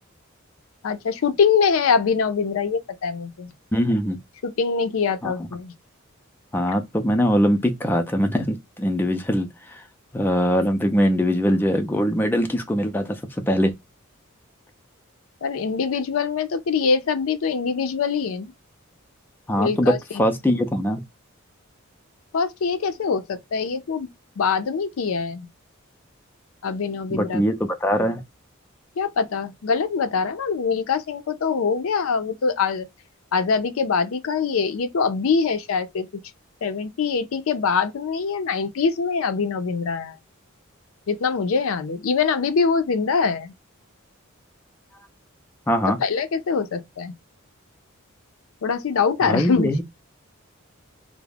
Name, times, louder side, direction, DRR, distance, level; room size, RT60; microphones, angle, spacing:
voice 1, 0.8-3.5 4.4-5.7 15.4-18.5 19.6-20.0 22.3-24.1 24.4-25.5 26.6-27.4 29.0-32.9 33.3-36.1 36.6-40.2 41.1-43.5 46.0-47.1 48.6-49.8, left 5 dB, 75° left, 0.5 m, -23 dB
voice 2, 3.7-4.2 5.2-5.3 6.5-9.8 10.1-13.2 13.5-13.7 19.5-21.0 27.1-28.2 45.7-46.0 49.2-49.8, equal, 10° left, 0.3 m, -22 dB
2.3 x 2.0 x 3.2 m
head